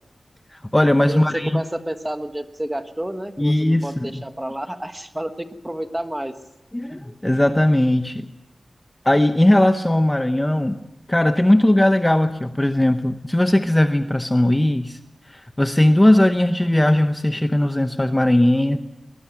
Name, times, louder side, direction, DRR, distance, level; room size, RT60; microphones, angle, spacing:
voice 1, 0.5-1.6 3.4-4.2 6.7-8.3 9.0-10.8 11.1-15.0 15.3-18.8, left 1 dB, 15° left, 8 dB, 0.8 m, -18 dB
voice 2, 1.1-6.3, right 1 dB, 10° right, 8 dB, 1.5 m, -30 dB
21.5 x 20.0 x 6.1 m, 0.87 s
wide cardioid pair, 110°, 0 cm